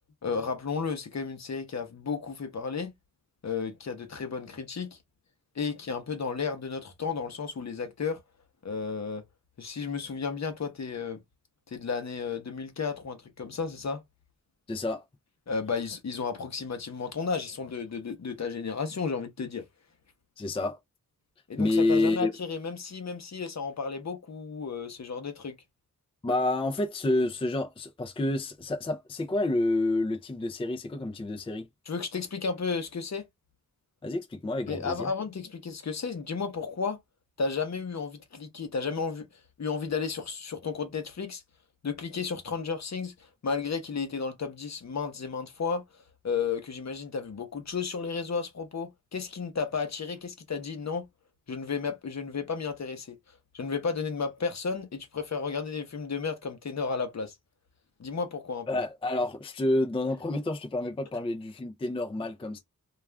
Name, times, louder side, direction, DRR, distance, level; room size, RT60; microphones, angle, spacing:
voice 1, 0.2-2.9 3.4-5.0 5.6-8.2 8.6-9.2 9.6-11.2 11.7-14.0 15.5-19.6 21.5-25.5 31.9-33.2 34.7-37.0 37.4-39.3 39.6-41.4 41.8-43.1 43.4-45.8 46.2-51.1 51.5-53.2 53.5-57.3 58.0-58.7, left 5 dB, 55° left, 0.8 m, -33 dB
voice 2, 14.7-15.1 20.4-20.8 21.6-22.3 26.2-31.7 34.0-35.1 58.7-62.6, left 2 dB, 15° left, 0.4 m, -28 dB
2.4 x 2.3 x 3.2 m
wide cardioid pair, 130°, 33 cm